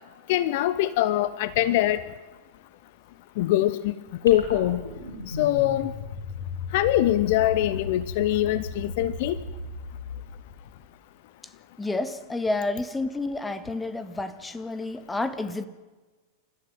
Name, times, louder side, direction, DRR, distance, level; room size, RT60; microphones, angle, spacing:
voice 1, 0.3-2.0 3.4-3.9 4.2-4.8 5.3-5.9 6.7-9.4, left 14 dB, 50° left, 16 dB, 0.9 m, -23 dB
sound 1, 4.3-10.8, left 3 dB, 75° left, 5.0 m, -36 dB
voice 2, 11.8-15.7, left 2 dB, 10° left, 12 dB, 1.9 m, -30 dB
29.0 x 14.0 x 9.2 m, 1.2 s
figure-of-eight pair, 90°, 0 cm